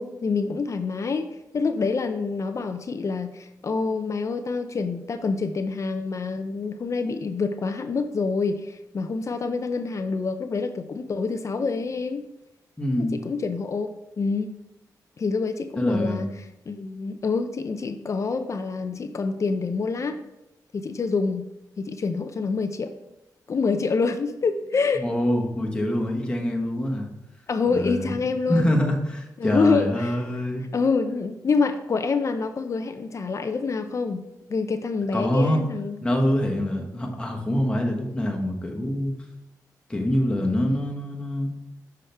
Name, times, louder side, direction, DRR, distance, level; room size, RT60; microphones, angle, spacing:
voice 1, 0.0-12.2 13.1-13.9 14.2-14.6 15.2-16.3 16.7-20.2 20.7-21.5 21.8-22.9 23.5-25.0 27.5-28.8 29.4-30.1 30.7-34.2 34.5-36.0, left 4 dB, 45° left, 9 dB, 0.5 m, -26 dB
voice 2, 12.8-13.2 15.8-16.3 24.9-27.1 27.7-28.1 28.5-30.6 35.1-35.6 36.0-39.1 39.9-41.5, equal, 15° left, 0 dB, 1.3 m, -25 dB
6.3 x 5.7 x 3.3 m, 0.90 s
cardioid pair, 95°, 7 cm